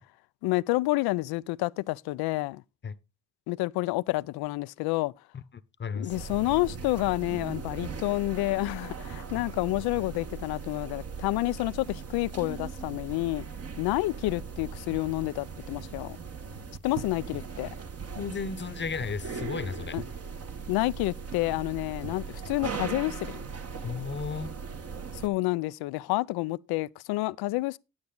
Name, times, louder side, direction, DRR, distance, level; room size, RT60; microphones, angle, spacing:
voice 1, 0.4-2.6 3.5-5.1 5.9-13.4 13.8-16.2 16.8-17.7 19.9-20.0 20.7-23.4 25.1-27.8, left 20 dB, 80° left, 0.5 m, -29 dB
voice 2, 5.3-6.1 18.1-20.0 23.8-24.5, left 6 dB, 30° left, 0.9 m, -34 dB
sound 1, 6.1-25.3, right 5 dB, 40° right, 1.4 m, -39 dB
9.5 x 8.8 x 3.8 m
supercardioid pair, 70°, 37 cm